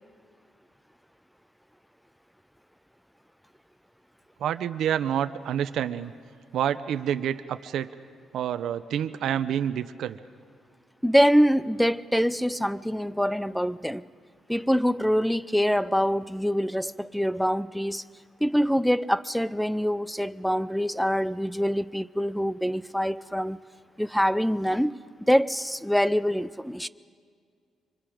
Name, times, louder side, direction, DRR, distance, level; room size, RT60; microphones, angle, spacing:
voice 1, 4.4-6.1 6.5-7.9 8.3-10.2, right 9 dB, 75° right, 0.7 m, -28 dB
voice 2, 11.0-14.1 14.5-18.0 18.4-23.6 24.0-25.0 25.3-26.9, equal, ahead, 0.5 m, -24 dB
25.0 x 24.0 x 5.1 m
cardioid pair, 90°, 0 cm